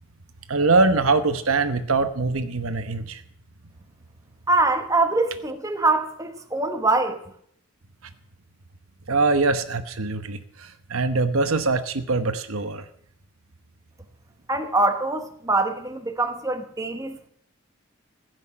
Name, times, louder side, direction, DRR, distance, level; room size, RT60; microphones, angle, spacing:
voice 1, 0.5-3.2 9.1-12.8, right 3 dB, 80° right, 1.0 m, -23 dB
voice 2, 4.5-7.2 14.5-17.3, right 2 dB, 15° right, 1.1 m, -23 dB
15.5 x 6.3 x 8.6 m
head